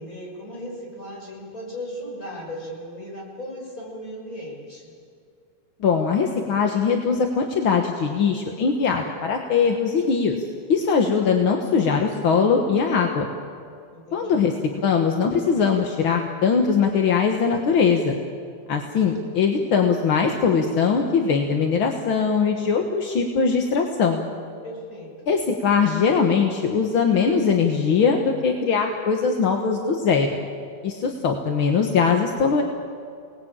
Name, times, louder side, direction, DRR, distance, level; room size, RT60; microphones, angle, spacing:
voice 1, 0.0-4.9 13.9-14.4 24.6-25.1, equal, 25° left, -2 dB, 6.7 m, -36 dB
voice 2, 5.8-10.4 10.7-13.3 14.1-14.5 14.8-18.1 18.7-24.2 25.3-30.3 30.8-32.6, left 5 dB, 50° left, 3 dB, 1.7 m, -21 dB
28.5 x 19.5 x 8.9 m, 2.3 s
omnidirectional pair, 3.7 m